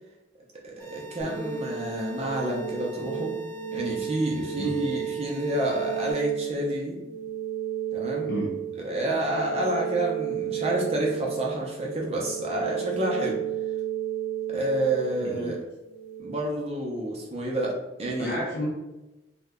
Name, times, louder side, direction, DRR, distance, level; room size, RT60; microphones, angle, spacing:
voice 1, 0.6-3.4 3.7-7.0 7.9-8.3 8.8-13.4 14.5-15.6 16.2-18.4, right 1 dB, 35° right, -2 dB, 0.5 m, -29 dB
sound 1, 0.8-6.1, right 5 dB, 10° left, 0.7 m, -47 dB
sound 2, 1.2-16.2, right 9 dB, 35° left, 0.9 m, -33 dB
voice 2, 15.2-15.6 18.2-18.7, equal, 55° left, -4 dB, 0.5 m, -31 dB
2.8 x 2.1 x 3.5 m, 1.0 s
head